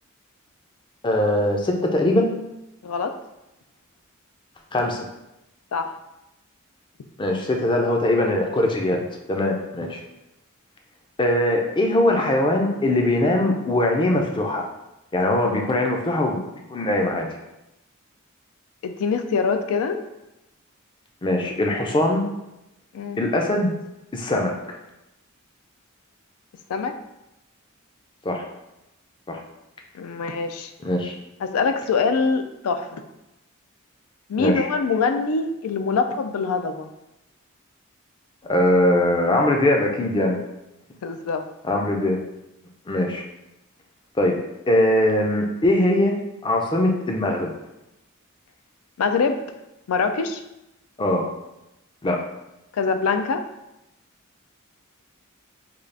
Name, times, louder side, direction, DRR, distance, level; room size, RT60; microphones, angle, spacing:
voice 1, 1.0-2.3 4.7-5.1 7.2-10.0 11.2-14.6 15.1-16.4 16.7-17.3 21.2-22.3 23.2-23.7 24.1-24.8 28.2-28.5 29.3-29.4 30.8-31.1 34.4-34.7 38.5-40.4 41.6-42.2 42.9-43.2 44.2-44.4 44.7-46.1 46.4-47.5 51.0-51.2 52.0-52.2, left 1 dB, 20° left, 2 dB, 0.4 m, -21 dB
voice 2, 2.8-3.1 5.7-5.9 18.8-20.0 22.9-23.2 26.7-26.9 29.9-30.7 31.4-33.0 34.3-36.9 41.0-41.4 49.0-49.4 49.9-50.4 52.7-53.4, left 4 dB, 90° left, 8 dB, 0.4 m, -24 dB
3.7 x 2.4 x 3.3 m, 0.92 s
head